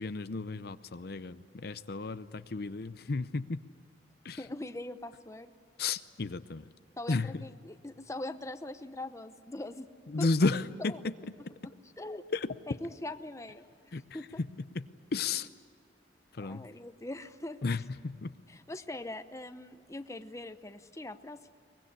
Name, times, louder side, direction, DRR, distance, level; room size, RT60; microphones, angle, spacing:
voice 1, 0.0-3.6 4.2-4.4 5.8-6.7 7.1-7.4 10.1-11.1 12.3-12.5 13.9-14.0 14.7-15.5 16.3-16.7 17.6-18.3, left 3 dB, 60° left, 12 dB, 0.6 m, -33 dB
voice 2, 4.4-5.5 7.0-9.9 10.2-10.3 10.8-11.0 11.6-12.2 12.7-13.6 14.1-14.4 16.4-17.6 18.5-21.5, left 1 dB, 15° left, 9 dB, 0.8 m, -42 dB
23.0 x 21.0 x 9.9 m, 2.2 s
head